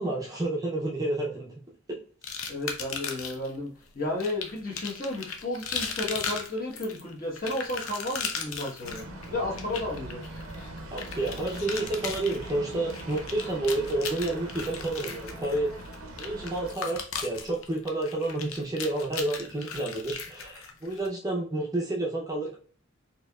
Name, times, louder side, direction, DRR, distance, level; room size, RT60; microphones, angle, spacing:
voice 1, 0.0-1.5 1.9-2.0 10.9-15.7 16.2-22.6, right 2 dB, 15° right, -3 dB, 0.5 m, -30 dB
sound 1, 2.2-3.5 4.2-21.1, left 6 dB, 75° left, 0.6 m, -37 dB
voice 2, 2.5-10.2, left 1 dB, 40° left, -3 dB, 1.1 m, -33 dB
sound 2, 8.8-16.7, right 1 dB, 85° right, 0.6 m, -41 dB
4.4 x 2.8 x 2.3 m, 0.43 s
head